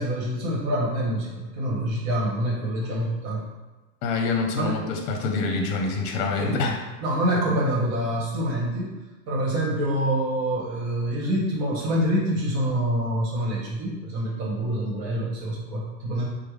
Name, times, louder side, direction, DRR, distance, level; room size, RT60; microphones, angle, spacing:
voice 1, 0.0-3.4 4.5-4.8 6.4-6.6 7.0-8.9 9.3-16.3, right 1 dB, 45° right, -3 dB, 1.2 m, -26 dB
voice 2, 4.0-6.8, left 4 dB, 55° left, 3 dB, 0.7 m, -26 dB
3.4 x 2.1 x 3.1 m, 1.2 s
hypercardioid pair, 110°, 50 cm